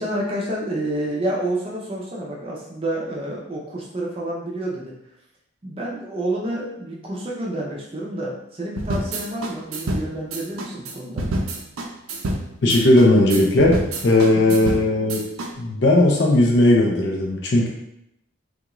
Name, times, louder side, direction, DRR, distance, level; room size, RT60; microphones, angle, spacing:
voice 1, 0.0-4.9 5.6-11.3 14.5-14.6, right 1 dB, 25° right, -3 dB, 0.5 m, -29 dB
sound 1, 8.8-15.5, right 1 dB, 90° right, 0.5 m, -28 dB
voice 2, 12.6-15.2 15.6-17.7, left 1 dB, 55° left, -1 dB, 0.5 m, -17 dB
3.6 x 2.4 x 2.9 m, 0.78 s
head